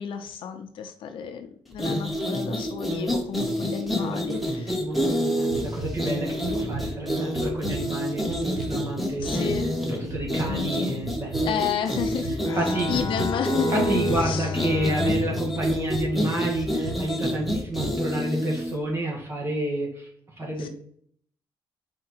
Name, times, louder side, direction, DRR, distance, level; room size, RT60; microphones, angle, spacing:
voice 1, 0.0-4.7 9.2-9.7 10.5-10.9 11.4-13.7 14.2-14.5 20.6-20.7, left 7 dB, 70° left, 6 dB, 0.8 m, -32 dB
sound 1, 1.7-18.8, equal, ahead, 1.2 m, -28 dB
voice 2, 4.0-9.5 9.9-11.5 12.5-12.9 13.7-20.1 20.4-20.7, right 1 dB, 30° right, -3 dB, 1.9 m, -30 dB
sound 2, 5.5-18.2, right 2 dB, 75° right, 1.2 m, -38 dB
Bowed string instrument, 12.5-16.9, left 6 dB, 35° left, 0.5 m, -34 dB
4.8 x 4.5 x 4.4 m, 0.62 s
cardioid pair, 110°, 9 cm